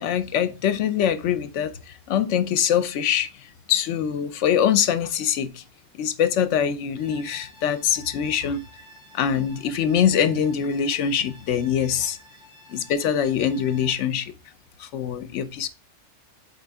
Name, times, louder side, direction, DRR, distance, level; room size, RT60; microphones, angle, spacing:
voice 1, 0.0-5.6 5.9-8.6 9.1-12.2 12.7-14.3 14.8-15.7, left 8 dB, 75° left, 1.0 m, -23 dB
sound 1, 6.9-13.9, equal, 15° right, 2.5 m, -51 dB
7.8 x 3.8 x 3.4 m
omnidirectional pair, 1.3 m